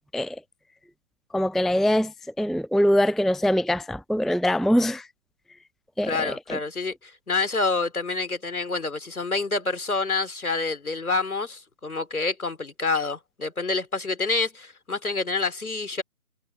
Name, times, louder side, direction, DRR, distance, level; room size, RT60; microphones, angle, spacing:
voice 1, 1.3-5.1 6.0-6.6, equal, ahead, 0.5 m, -23 dB
voice 2, 6.0-16.0, left 3 dB, 75° left, 3.4 m, -27 dB
figure-of-eight pair, 175°, 44 cm